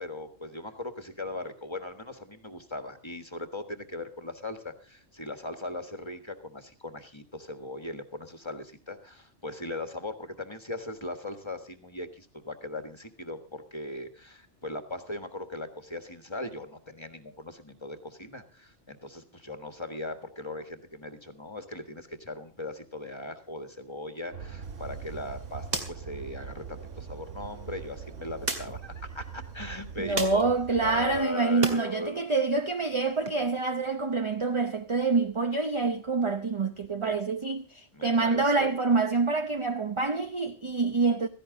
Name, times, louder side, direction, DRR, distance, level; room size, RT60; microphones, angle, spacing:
voice 1, 0.0-30.5 30.8-32.3 37.0-37.1 37.9-38.7, left 2 dB, 25° left, 1.6 m, -39 dB
sound 1, 24.3-31.3, right 7 dB, 75° right, 1.5 m, -42 dB
sound 2, 24.6-31.8 32.2-33.3, right 2 dB, 50° right, 2.5 m, -39 dB
voice 2, 30.0-41.3, right 3 dB, 30° right, 0.7 m, -26 dB
16.5 x 15.0 x 3.9 m
omnidirectional pair, 1.3 m